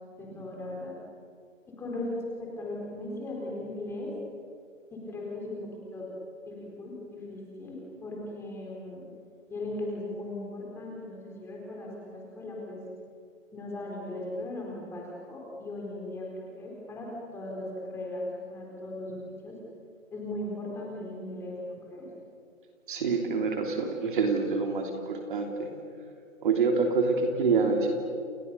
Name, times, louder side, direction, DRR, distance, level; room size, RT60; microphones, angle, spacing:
voice 1, 0.1-1.0 1.7-2.1 2.4-4.1 4.9-6.1 6.5-9.0 9.5-12.8 13.5-19.6 20.1-22.1, left 1 dB, 5° left, -2 dB, 4.2 m, -38 dB
voice 2, 22.9-25.7 26.4-27.9, right 4 dB, 40° right, 3 dB, 3.2 m, -26 dB
29.5 x 27.5 x 6.9 m, 2.2 s
hypercardioid pair, 160°, 40 cm